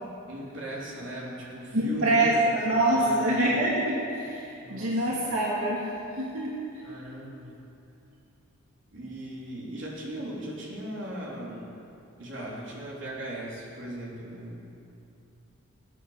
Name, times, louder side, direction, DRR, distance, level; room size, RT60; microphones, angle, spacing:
voice 1, 0.3-2.4 2.7-3.5 4.6-5.1 6.8-7.6 8.9-11.8 12.2-14.6, right 1 dB, 60° right, -4 dB, 3.5 m, -38 dB
voice 2, 1.7-6.6, right 1 dB, 85° right, -5 dB, 2.5 m, -25 dB
20.5 x 9.2 x 6.6 m, 2.8 s
head